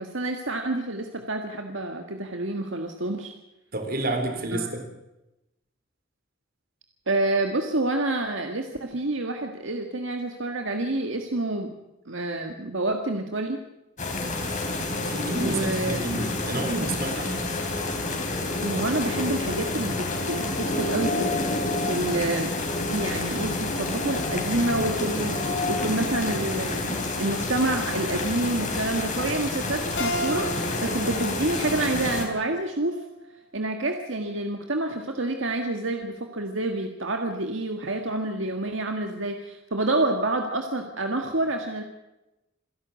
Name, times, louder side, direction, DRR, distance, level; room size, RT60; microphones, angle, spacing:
voice 1, 0.0-3.3 4.5-4.7 7.1-11.7 12.1-13.6 15.4-16.2 18.6-21.3 21.8-22.5 22.9-33.0 33.5-41.8, right 2 dB, 75° right, 4 dB, 1.7 m, -28 dB
voice 2, 3.7-4.8 15.0-17.5, right 2 dB, 50° right, 6 dB, 3.6 m, -29 dB
sound 1, 14.0-32.3, left 2 dB, 40° left, 3.8 m, -29 dB
Keyboard (musical), 30.0-33.2, equal, 60° left, 4.6 m, -34 dB
27.5 x 11.5 x 8.3 m, 0.97 s
head